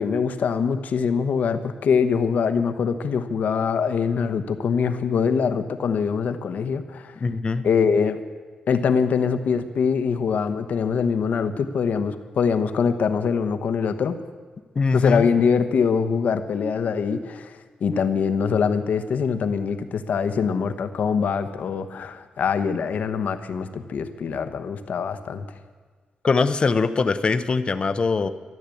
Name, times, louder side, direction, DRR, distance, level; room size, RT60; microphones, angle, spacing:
voice 1, 0.0-7.1 7.6-8.2 8.7-14.2 14.9-17.5 17.8-25.4, left 6 dB, 70° left, 10 dB, 1.1 m, -23 dB
voice 2, 7.2-7.6 14.7-15.3 26.2-28.3, left 4 dB, 35° left, 12 dB, 0.7 m, -22 dB
14.0 x 11.5 x 8.5 m, 1.5 s
wide cardioid pair, 125°, 3 cm